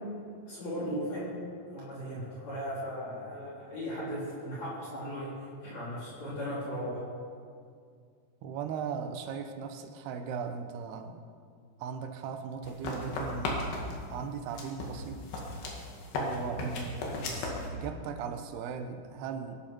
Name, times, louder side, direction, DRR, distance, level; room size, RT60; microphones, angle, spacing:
voice 1, 0.5-1.4 1.7-5.4 5.6-7.0, equal, 45° left, -8 dB, 4.2 m, -37 dB
voice 2, 8.4-11.2 11.8-13.6 14.1-15.2 16.1-19.6, right 6 dB, 90° right, 7 dB, 3.0 m, -38 dB
sound 1, 12.6-14.1 14.6-17.7, left 2 dB, 85° left, 4.3 m, -35 dB
22.5 x 12.0 x 4.5 m, 2.2 s
omnidirectional pair, 4.6 m